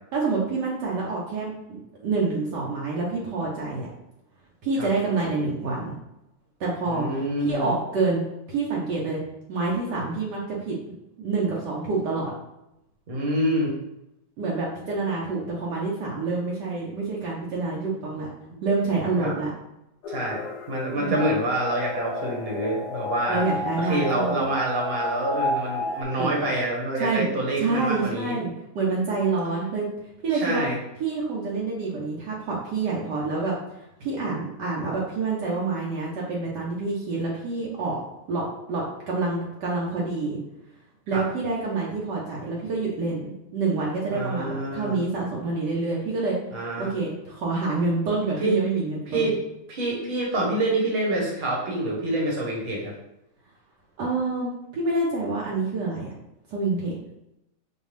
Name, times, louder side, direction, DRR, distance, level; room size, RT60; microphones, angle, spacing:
voice 1, 0.1-1.5 2.0-3.9 4.6-6.0 6.6-8.2 8.5-9.2 9.5-12.3 14.4-18.3 18.6-19.5 21.0-21.2 23.3-24.4 26.2-26.3 27.0-27.3 27.6-29.9 30.2-30.7 31.0-33.5 34.0-38.0 38.3-38.4 38.7-40.4 41.1-46.4 46.8-49.3 54.0-56.1 56.5-56.9, right 3 dB, 70° right, -4 dB, 1.3 m, -27 dB
voice 2, 6.9-7.7 13.1-13.7 19.1-19.3 20.1-20.4 20.7-23.4 23.8-28.4 30.3-30.7 41.1-41.2 44.1-45.0 46.5-46.9 48.4-48.5 49.1-49.3 49.7-52.9, right 1 dB, 40° right, -2 dB, 1.1 m, -26 dB
sound 1, 20.0-26.0, left 1 dB, 75° left, 1.1 m, -31 dB
5.3 x 2.2 x 3.2 m, 0.86 s
omnidirectional pair, 1.9 m